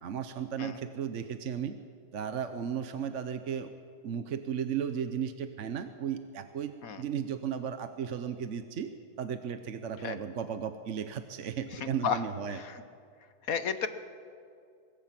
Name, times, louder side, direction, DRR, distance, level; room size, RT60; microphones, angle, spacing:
voice 1, 0.0-1.7 2.1-3.7 4.0-8.9 9.2-12.6, right 8 dB, 55° right, 8 dB, 1.1 m, -35 dB
voice 2, 11.7-12.2 12.5-12.8 13.5-13.9, left 6 dB, 60° left, 10 dB, 1.4 m, -33 dB
24.5 x 21.5 x 6.0 m, 2.3 s
omnidirectional pair, 1.8 m